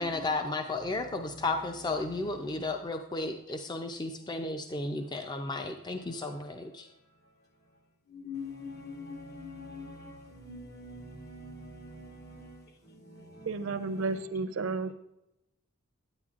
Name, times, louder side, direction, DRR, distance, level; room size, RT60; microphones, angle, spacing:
voice 1, 0.0-6.9, left 2 dB, 20° left, 0.4 m, -33 dB
voice 2, 8.1-9.9 10.5-11.1 11.4-11.5, left 4 dB, 80° left, 3.3 m, -42 dB
voice 3, 13.5-14.9, right 3 dB, 65° right, 0.5 m, -32 dB
9.8 x 9.0 x 2.4 m
head